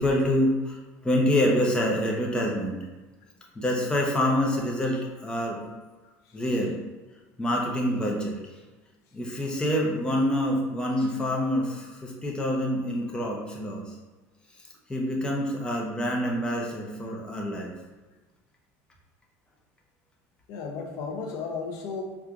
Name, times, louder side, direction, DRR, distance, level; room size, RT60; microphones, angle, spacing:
voice 1, 0.0-2.8 3.5-5.6 6.3-6.8 7.4-8.4 9.1-14.0 14.9-17.7, equal, 15° left, -1 dB, 0.8 m, -26 dB
voice 2, 6.0-6.4 20.5-22.0, left 5 dB, 65° left, 1 dB, 0.6 m, -35 dB
4.5 x 2.4 x 2.5 m, 1.2 s
supercardioid pair, 100°, 6 cm